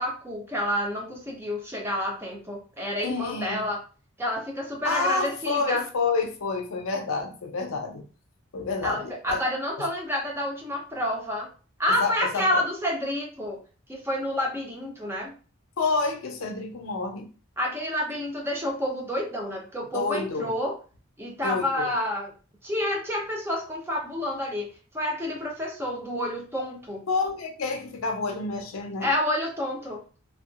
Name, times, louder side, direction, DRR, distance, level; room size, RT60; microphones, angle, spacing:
voice 1, 0.0-3.8 4.2-5.9 8.8-11.5 11.8-13.6 13.9-15.3 17.6-20.7 21.2-22.3 22.6-24.7 24.9-27.0 29.0-30.0, left 1 dB, 10° right, 0 dB, 0.5 m, -29 dB
voice 2, 3.0-3.7 4.8-8.0 8.5-9.4 12.0-12.6 15.8-17.3 19.9-20.5 21.4-21.9 27.1-29.1, left 4 dB, 80° left, 4 dB, 0.6 m, -29 dB
2.6 x 2.3 x 2.4 m, 0.37 s
head